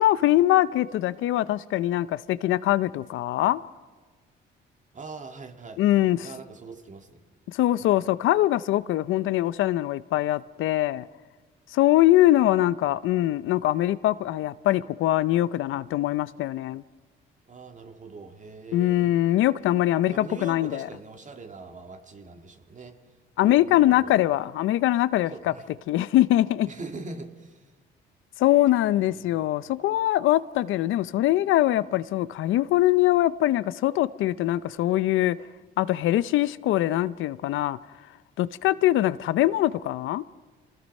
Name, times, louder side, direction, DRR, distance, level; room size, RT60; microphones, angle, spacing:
voice 1, 0.0-3.6 5.8-6.3 7.5-11.1 11.7-16.8 18.7-20.9 23.4-25.5 25.9-26.7 28.4-35.4 35.8-37.8 38.4-40.2, left 14 dB, 85° left, 0.6 m, -22 dB
voice 2, 4.9-5.8 6.2-7.2 7.8-7.9 17.5-19.1 20.1-23.0 23.4-24.2 25.3-25.7 26.7-27.7 29.1-29.4, right 3 dB, 40° right, 2.0 m, -42 dB
27.0 x 19.5 x 5.4 m
cardioid pair, 90°, 20 cm